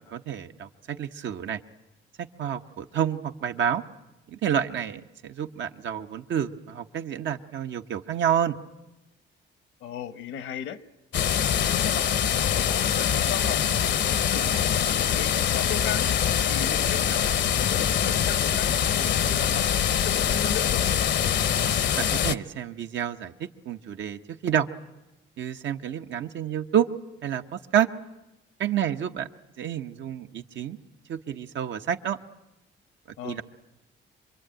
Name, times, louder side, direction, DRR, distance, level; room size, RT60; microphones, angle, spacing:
voice 1, 0.1-1.6 2.4-3.8 4.3-8.5 22.0-24.7 25.4-26.9 27.2-27.9 28.6-29.3 29.6-30.8 31.1-32.2 33.2-33.4, right 9 dB, 70° right, 7 dB, 1.2 m, -29 dB
voice 2, 9.8-10.8 11.4-14.5 14.8-16.1 16.5-17.2 17.5-18.7 19.0-20.8 33.2-33.4, left 8 dB, 85° left, 14 dB, 1.2 m, -37 dB
sound 1, 11.1-22.4, left 9 dB, 65° left, 0.8 m, -24 dB
26.0 x 22.5 x 9.0 m, 0.99 s
cardioid pair, 90°, 20 cm